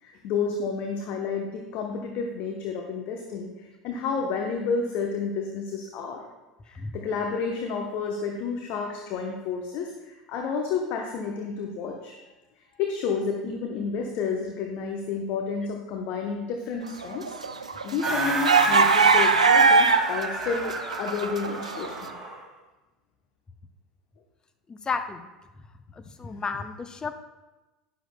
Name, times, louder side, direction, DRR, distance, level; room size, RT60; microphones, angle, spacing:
voice 1, 0.0-6.3 6.6-12.1 12.8-22.1, left 5 dB, 50° left, 2 dB, 0.9 m, -31 dB
sound 1, 17.0-20.2 20.5-21.9, right 4 dB, 85° right, 0.5 m, -20 dB
sound 2, 18.0-22.4, right 2 dB, 15° right, 2.1 m, -30 dB
voice 2, 24.7-25.3 25.9-27.1, left 4 dB, 20° left, 8 dB, 0.7 m, -32 dB
12.0 x 10.0 x 2.2 m, 1.1 s
figure-of-eight pair, 75°, 3 cm